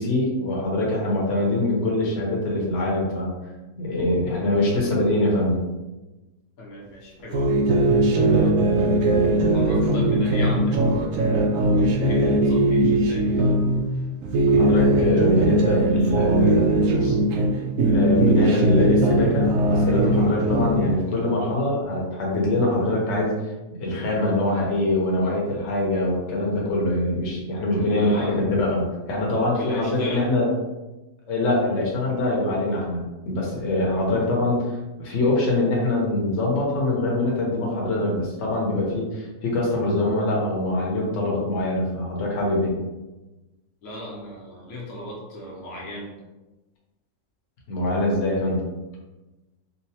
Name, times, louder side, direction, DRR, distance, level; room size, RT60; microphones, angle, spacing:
voice 1, 0.0-3.3 3.8-5.6 14.6-17.2 17.8-23.3 23.8-30.5 31.3-34.7 35.0-42.8 47.7-48.6, left 1 dB, 55° left, -3 dB, 1.0 m, -23 dB
voice 2, 6.6-7.5 8.1-8.6 9.5-11.2 11.7-13.3 27.7-28.4 29.5-30.3 33.9-34.0 43.8-46.1, left 1 dB, 75° left, -4 dB, 1.2 m, -37 dB
sound 1, 7.3-13.8 14.2-17.5 17.8-20.9, right 1 dB, 70° right, 0.9 m, -20 dB
3.9 x 2.1 x 2.8 m, 1.1 s
omnidirectional pair, 1.6 m